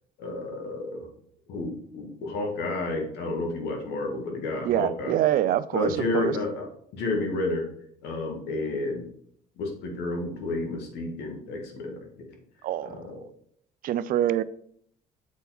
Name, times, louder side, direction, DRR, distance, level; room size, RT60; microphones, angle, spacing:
voice 1, 0.2-1.1 1.5-5.2 5.7-6.7 6.9-7.7 8.0-9.0 9.6-12.0 12.8-13.2, left 2 dB, 80° left, 1.7 m, -31 dB
voice 2, 4.6-6.4 12.6-13.0 13.8-14.4, right 12 dB, 55° right, 0.4 m, -25 dB
7.2 x 4.2 x 4.0 m
cardioid pair, 110°, 17 cm